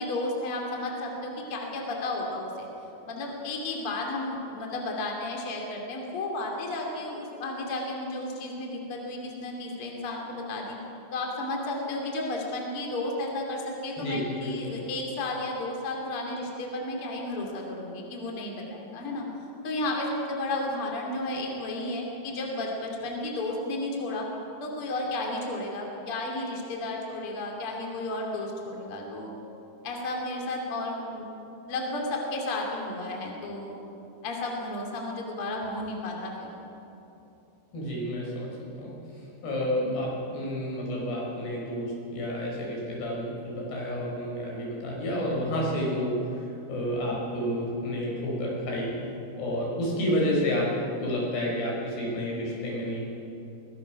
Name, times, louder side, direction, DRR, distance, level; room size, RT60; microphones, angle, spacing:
voice 1, 0.0-2.7 3.1-10.8 11.1-19.3 19.6-24.3 24.6-29.3 29.8-31.3 31.7-33.8 34.2-36.5, left 2 dB, 35° left, -1 dB, 3.3 m, -33 dB
voice 2, 14.0-14.8 37.7-38.5 38.8-38.9 39.4-49.0 49.4-50.7 51.0-53.0, equal, 90° left, -3 dB, 7.1 m, -30 dB
23.5 x 19.5 x 6.0 m, 2.9 s
omnidirectional pair, 4.6 m